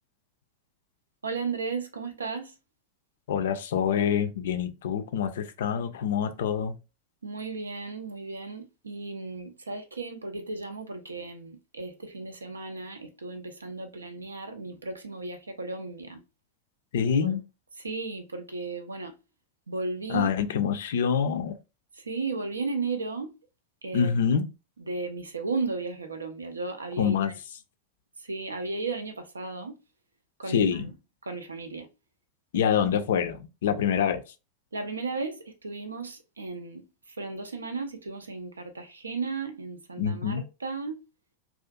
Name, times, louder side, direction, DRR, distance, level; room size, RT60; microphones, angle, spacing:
voice 1, 1.2-2.5 7.2-16.2 17.2-17.4 17.8-19.2 19.7-20.3 22.0-23.3 23.8-24.4 24.8-27.3 28.2-29.8 30.4-30.9 31.3-31.9 34.7-41.0, right 3 dB, 75° right, 0.5 m, -35 dB
voice 2, 3.3-6.7 16.9-17.4 20.1-21.6 23.9-24.4 27.0-27.3 30.5-30.9 32.5-34.2 40.0-40.4, left 7 dB, 60° left, 0.4 m, -26 dB
2.4 x 2.4 x 2.2 m
figure-of-eight pair, 90°, 0 cm